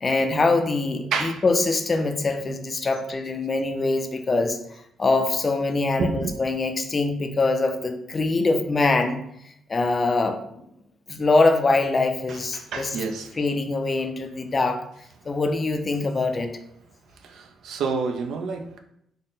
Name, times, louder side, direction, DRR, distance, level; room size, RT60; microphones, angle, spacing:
voice 1, 0.0-4.6 5.0-9.2 9.7-10.4 11.1-12.9 13.4-14.8 15.3-16.6, left 3 dB, 30° left, 6 dB, 0.4 m, -23 dB
voice 2, 1.1-1.4 6.0-6.4 12.3-13.4 17.2-18.8, right 4 dB, 75° right, 5 dB, 0.5 m, -29 dB
3.8 x 2.1 x 3.9 m, 0.74 s
cardioid pair, 125°, 0 cm